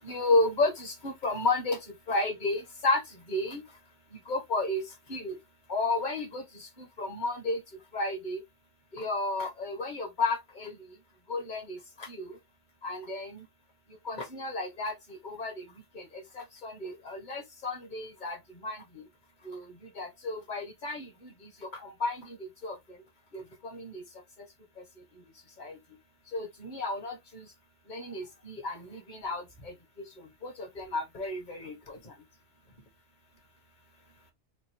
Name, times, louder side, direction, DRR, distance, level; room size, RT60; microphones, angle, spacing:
voice 1, 0.0-1.8 2.1-3.6 4.1-5.4 5.7-7.6 7.9-8.4 8.9-11.0 11.3-12.4 12.8-13.4 14.0-19.0 19.4-23.0 23.3-24.0 24.4-24.5 24.8-25.2 25.6-25.8 26.3-27.5 27.9-32.2, left 2 dB, 45° left, 1.3 m, -33 dB
4.5 x 2.5 x 3.0 m
omnidirectional pair, 1.2 m